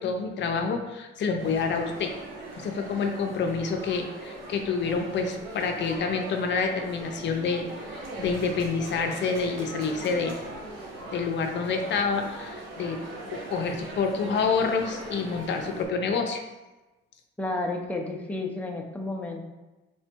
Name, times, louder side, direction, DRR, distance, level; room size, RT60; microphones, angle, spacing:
voice 1, 0.0-2.1 2.5-10.4 11.1-13.0 13.3-16.4, left 5 dB, 65° left, 4 dB, 0.6 m, -28 dB
sound 1, 1.4-15.8, right 1 dB, 90° right, 0.9 m, -40 dB
voice 2, 17.4-19.4, left 2 dB, 5° left, 0 dB, 0.7 m, -31 dB
3.4 x 3.2 x 4.4 m, 1.1 s
cardioid pair, 90°, 20 cm